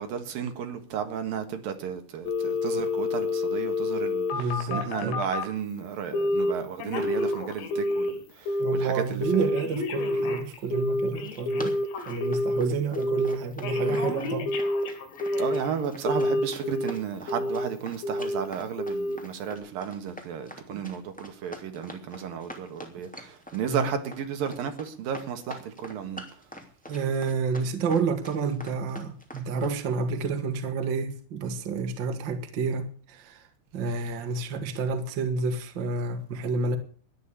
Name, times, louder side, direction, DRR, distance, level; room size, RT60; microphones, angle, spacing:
voice 1, 0.0-9.5 15.4-26.2, right 7 dB, 60° right, 2.8 m, -33 dB
Telephone, 2.3-5.5 6.1-6.5 6.8-8.2 8.5-8.9 9.2-12.6 13.0-13.4 13.6-15.7 16.1-16.9 17.3-17.7 18.0-18.4 18.8-19.2 19.5-19.6, left 2 dB, 70° left, 4.8 m, -28 dB
voice 2, 4.3-5.2 8.6-11.8 12.0-14.5 20.7-20.8 23.7-23.9 26.9-33.5 33.7-36.8, right 4 dB, 75° right, 1.0 m, -29 dB
Run, 11.0-29.8, equal, 5° left, 1.3 m, -44 dB
13.0 x 11.0 x 8.4 m
omnidirectional pair, 5.5 m